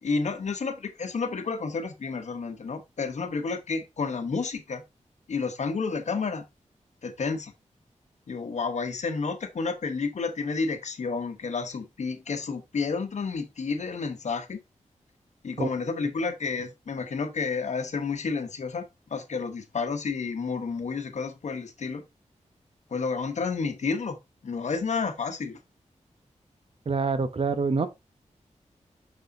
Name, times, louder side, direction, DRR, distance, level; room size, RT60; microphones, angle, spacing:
voice 1, 0.0-4.8 5.3-6.4 7.0-7.5 8.3-14.6 15.4-22.0 22.9-24.2 24.4-25.6, left 4 dB, 70° left, 1.1 m, -30 dB
voice 2, 26.9-27.9, right 4 dB, 50° right, 0.8 m, -26 dB
6.6 x 6.2 x 2.7 m
wide cardioid pair, 110°, 13 cm